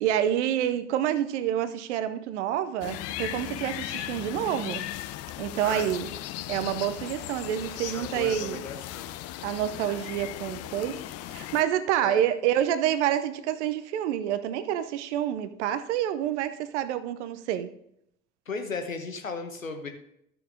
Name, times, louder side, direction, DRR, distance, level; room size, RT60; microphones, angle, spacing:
voice 1, 0.0-4.8 5.4-6.1 6.5-8.6 9.4-11.0 11.3-17.7, right 10 dB, 60° right, 0.9 m, -28 dB
sound 1, 2.8-11.6, left 14 dB, 40° left, 0.6 m, -37 dB
voice 2, 5.6-6.2 7.9-9.1 12.0-12.2 18.5-19.9, left 4 dB, 85° left, 1.2 m, -36 dB
13.0 x 7.0 x 3.6 m
figure-of-eight pair, 65°, 39 cm